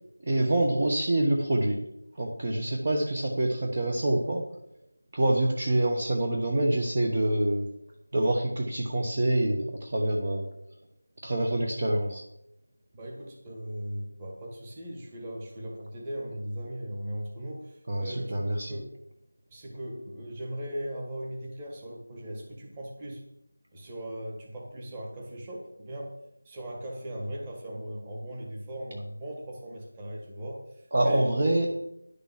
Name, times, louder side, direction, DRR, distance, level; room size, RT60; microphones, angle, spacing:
voice 1, 0.2-1.8 2.2-4.4 5.1-7.7 8.1-10.4 11.2-12.2 17.9-18.7 30.9-31.7, right 1 dB, 25° right, 0 dB, 1.1 m, -26 dB
voice 2, 12.9-18.8 19.5-23.2 23.7-26.1 26.4-31.3, equal, 10° right, -2 dB, 1.5 m, -38 dB
10.5 x 6.7 x 7.4 m, 0.78 s
figure-of-eight pair, 180°, 0 cm